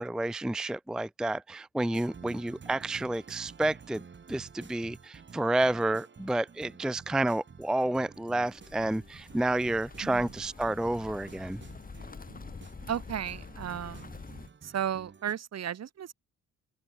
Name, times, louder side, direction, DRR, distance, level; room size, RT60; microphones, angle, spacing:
voice 1, 0.0-4.0 4.3-11.6, right 1 dB, ahead, 0.5 m, -30 dB
sound 1, 1.9-15.3, right 5 dB, 40° right, 5.8 m, -51 dB
sound 2, 8.4-14.5, left 4 dB, 30° left, 3.1 m, -46 dB
voice 2, 10.0-10.3 12.9-14.1 14.6-16.1, right 9 dB, 60° right, 3.0 m, -34 dB
open air
cardioid pair, 90°, 30 cm